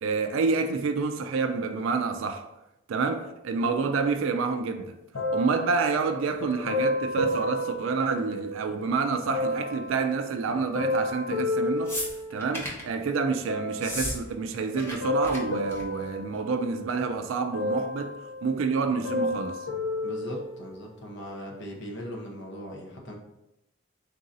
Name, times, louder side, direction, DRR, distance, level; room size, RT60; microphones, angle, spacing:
voice 1, 0.0-2.5 2.9-4.9 5.3-12.0 12.3-19.7, right 4 dB, 70° right, 0.3 m, -28 dB
sound 1, 5.1-8.7 9.3-12.8 13.5-14.1 14.8-17.1 17.5-18.5 18.8-20.9 21.5-21.6, left 1 dB, 85° left, 0.7 m, -31 dB
sound 2, 11.9-12.9 13.7-14.2 14.4-15.0 15.2-15.4 15.7-16.0 16.9-17.0, equal, 10° left, 0.7 m, -34 dB
voice 2, 20.0-23.1, equal, 55° left, 0.9 m, -39 dB
3.8 x 2.7 x 3.8 m
head